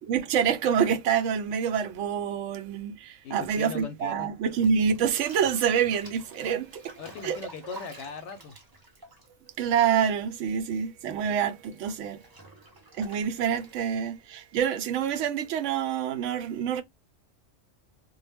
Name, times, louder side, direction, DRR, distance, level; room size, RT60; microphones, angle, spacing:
voice 1, 0.1-7.0 7.2-7.4 9.6-12.2 12.9-16.8, right 7 dB, 80° right, 0.9 m, -27 dB
voice 2, 3.2-4.3 7.0-8.5, left 5 dB, 70° left, 0.8 m, -39 dB
Bathtub (filling or washing), 4.5-10.3 10.6-14.2, right 2 dB, 30° right, 0.4 m, -50 dB
2.2 x 2.0 x 3.3 m
omnidirectional pair, 1.3 m